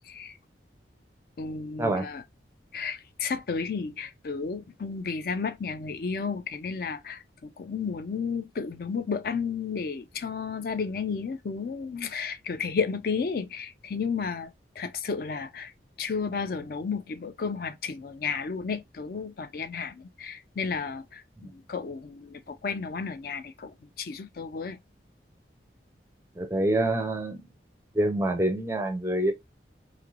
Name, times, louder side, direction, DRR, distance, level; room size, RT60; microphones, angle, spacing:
voice 1, 1.4-2.2 2.7-14.5 14.8-15.7 16.0-24.8, left 5 dB, 55° left, 0.4 m, -32 dB
voice 2, 26.4-27.4 27.9-29.3, right 1 dB, 15° right, 0.4 m, -26 dB
3.1 x 2.9 x 2.3 m
head